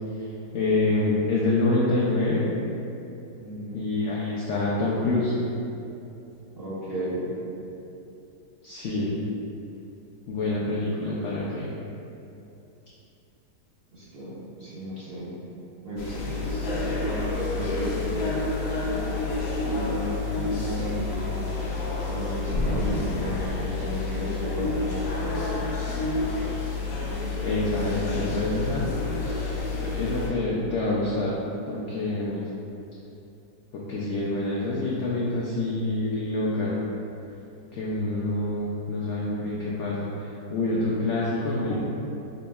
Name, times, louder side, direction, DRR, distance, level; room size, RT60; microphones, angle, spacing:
voice 1, 0.5-2.5 3.7-5.3 8.6-9.2 10.3-11.7 27.4-28.9 29.9-31.3 31.7-32.5 33.7-36.8 37.7-41.7, left 2 dB, 85° left, -6 dB, 0.6 m, -26 dB
voice 2, 3.4-3.8 6.5-7.3 13.9-15.3 15.8-18.1 19.6-21.2 22.0-25.1 41.6-41.7, right 1 dB, 55° right, -11 dB, 0.6 m, -34 dB
sound 1, 16.0-30.3, left 3 dB, 70° left, 1.0 m, -29 dB
5.0 x 2.8 x 2.2 m, 2.8 s
omnidirectional pair, 1.8 m